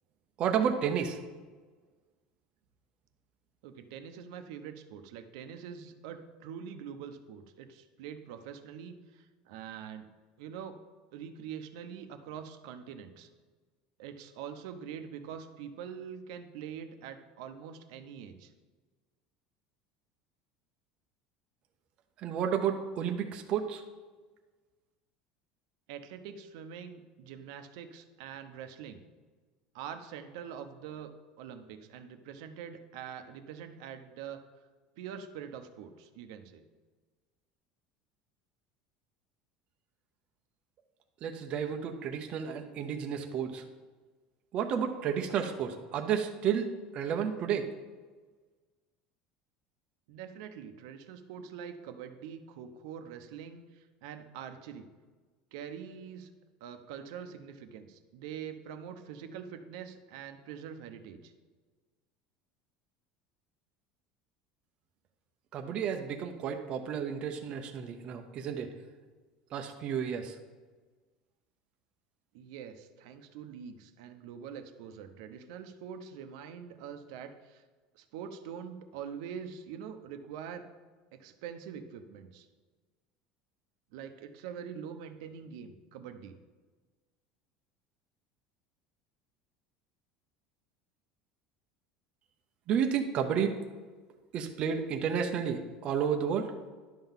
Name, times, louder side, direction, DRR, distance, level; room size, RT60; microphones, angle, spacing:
voice 1, 0.4-1.2 22.2-23.8 41.2-43.6 44.5-47.7 65.5-68.7 69.5-70.4 92.7-93.6 94.3-96.5, right 7 dB, 35° right, 4 dB, 0.6 m, -31 dB
voice 2, 3.6-10.1 10.4-10.8 11.1-13.3 14.0-18.5 25.9-29.0 29.7-31.1 31.4-34.4 35.0-36.6 50.1-54.9 55.5-56.3 56.6-61.3 72.3-77.6 77.9-80.7 81.1-82.5 83.9-86.4, right 8 dB, 70° right, 7 dB, 0.8 m, -44 dB
11.0 x 3.9 x 7.2 m, 1.4 s
cardioid pair, 170°, 3 cm